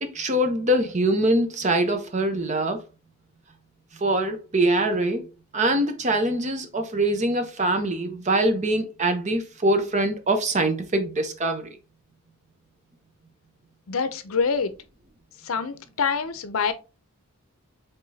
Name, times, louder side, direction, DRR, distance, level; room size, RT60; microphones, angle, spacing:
voice 1, 0.0-2.8 3.9-11.7, right 1 dB, 35° right, 0.7 m, -23 dB
voice 2, 13.9-14.7 15.4-16.7, left 5 dB, 65° left, 0.6 m, -25 dB
4.8 x 3.7 x 2.7 m
head